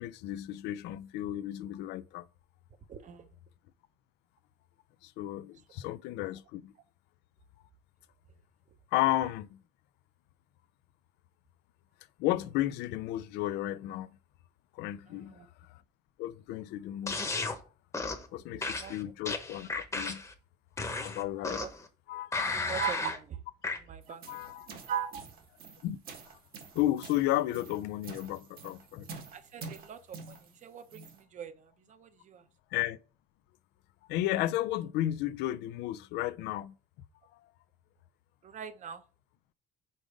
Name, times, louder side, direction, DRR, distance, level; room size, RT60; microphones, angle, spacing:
voice 1, 0.0-2.3 5.0-6.7 8.9-9.6 12.2-14.2 14.7-15.4 15.7-15.8 16.2-17.6 18.3-20.2 21.0-21.6 22.1-22.5 24.3-24.7 25.8-26.0 26.7-29.1 32.7-33.0 34.1-36.7, left 14 dB, 90° left, 0.4 m, -33 dB
voice 2, 2.9-3.3 15.1-15.5 18.7-19.0 21.6-21.7 22.5-23.4 23.9-24.6 24.9-25.2 29.3-32.4 38.4-39.0, right 9 dB, 45° right, 0.8 m, -40 dB
sound 1, 17.1-17.6 17.9-18.3 18.6-20.3 20.8-21.8 22.3-23.2 23.6-23.8, left 3 dB, 15° left, 0.9 m, -34 dB
sound 2, 24.0-31.2, right 4 dB, 60° right, 1.4 m, -48 dB
5.3 x 3.8 x 4.9 m
cardioid pair, 110°, 17 cm